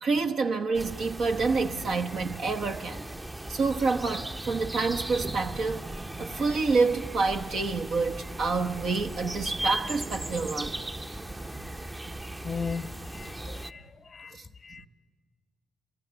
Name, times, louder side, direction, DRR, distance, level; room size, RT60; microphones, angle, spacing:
voice 1, 0.0-3.0 3.5-5.8 6.2-10.8 14.3-14.5, right 4 dB, 65° right, 1.1 m, -28 dB
sound 1, 0.7-13.7, right 1 dB, 20° right, 0.8 m, -37 dB
voice 2, 12.4-13.3 13.6-13.8 14.1-14.3 14.6-14.9, left 5 dB, 45° left, 0.6 m, -35 dB
27.0 x 22.0 x 6.8 m
hypercardioid pair, 45°, 0 cm